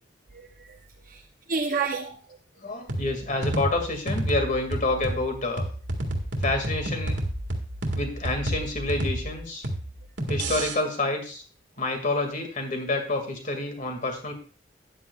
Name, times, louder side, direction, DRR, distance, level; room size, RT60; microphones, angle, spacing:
voice 1, 0.3-0.8 1.0-2.4 2.6-2.8 7.9-8.0, right 4 dB, 50° right, 3 dB, 0.7 m, -31 dB
voice 2, 2.6-5.7 6.4-7.2 7.9-9.7 10.3-11.4 11.8-14.3, left 2 dB, 45° left, 5 dB, 2.2 m, -28 dB
sound 1, 2.9-10.7, right 1 dB, 85° right, 1.9 m, -30 dB
13.0 x 9.7 x 2.4 m, 0.40 s
head